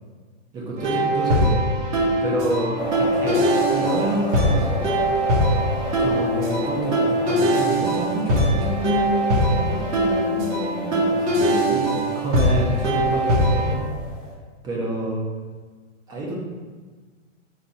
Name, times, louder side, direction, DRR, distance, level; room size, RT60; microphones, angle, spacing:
voice 1, 0.5-1.6 2.2-3.4 3.7-5.0 6.0-13.8 14.6-15.3 16.1-16.4, right 1 dB, 10° right, -3 dB, 0.4 m, -28 dB
sound 1, 0.8-13.7, equal, 70° right, 1.3 m, -22 dB
sound 2, 2.8-14.3, left 1 dB, 10° left, 0.8 m, -33 dB
4.1 x 2.6 x 4.5 m, 1.4 s
hypercardioid pair, 135°, 37 cm